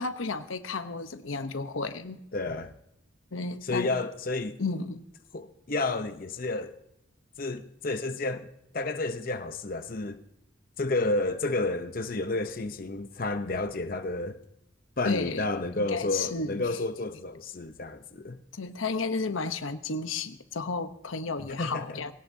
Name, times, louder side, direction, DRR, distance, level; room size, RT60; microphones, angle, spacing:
voice 1, 0.0-2.2 3.3-3.9 4.6-5.0 15.0-15.5 15.8-16.7 18.5-22.1, left 4 dB, 80° left, 0.9 m, -32 dB
voice 2, 2.3-2.7 3.6-4.6 5.3-6.7 7.4-8.5 8.7-10.2 10.8-14.4 15.0-18.4 21.5-22.0, left 2 dB, 45° left, 0.8 m, -31 dB
20.0 x 17.5 x 2.8 m
head